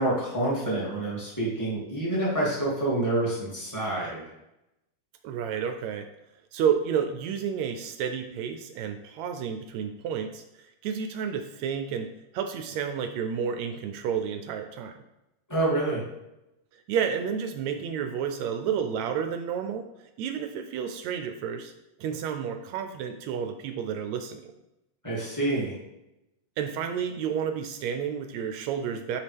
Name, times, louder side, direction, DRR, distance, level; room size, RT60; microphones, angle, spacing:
voice 1, 0.0-4.2 15.5-16.0 25.0-25.7, right 1 dB, 5° left, -6 dB, 2.0 m, -27 dB
voice 2, 5.2-6.1 6.5-12.1 12.3-14.9 16.7-19.8 20.2-21.7 22.0-24.5 26.6-29.2, right 7 dB, 80° right, 7 dB, 1.7 m, -30 dB
11.0 x 5.1 x 3.5 m, 0.91 s
omnidirectional pair, 3.6 m